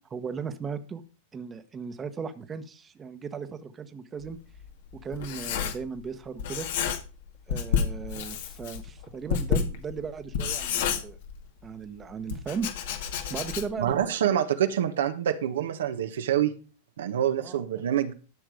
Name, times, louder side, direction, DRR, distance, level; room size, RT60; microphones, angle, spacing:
voice 1, 0.1-1.0 1.3-4.4 5.0-6.7 7.5-11.2 11.6-14.2 17.4-17.8, right 6 dB, 20° right, 9 dB, 1.2 m, -37 dB
Writing, 4.2-6.1 6.4-7.2 7.5-11.7 12.3-13.9, left 7 dB, 70° left, 2.0 m, -30 dB
voice 2, 13.8-16.5 17.0-18.1, right 10 dB, 85° right, 7 dB, 1.3 m, -26 dB
12.5 x 6.1 x 5.2 m, 0.34 s
hypercardioid pair, 125°, 0 cm